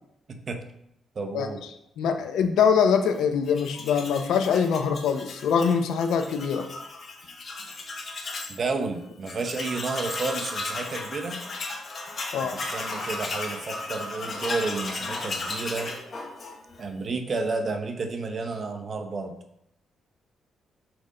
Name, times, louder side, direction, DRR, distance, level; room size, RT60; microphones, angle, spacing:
voice 1, 0.3-0.6 1.2-1.6 8.5-11.4 12.4-16.0 16.8-19.3, right 3 dB, 40° right, 5 dB, 0.8 m, -31 dB
voice 2, 2.0-6.7 12.3-12.6, left 6 dB, 90° left, 7 dB, 0.7 m, -23 dB
Tools, 3.5-8.6 8.9-9.0 9.2-16.8, left 3 dB, 45° left, 1.1 m, -35 dB
6.1 x 5.1 x 3.7 m, 0.79 s
cardioid pair, 125°, 0 cm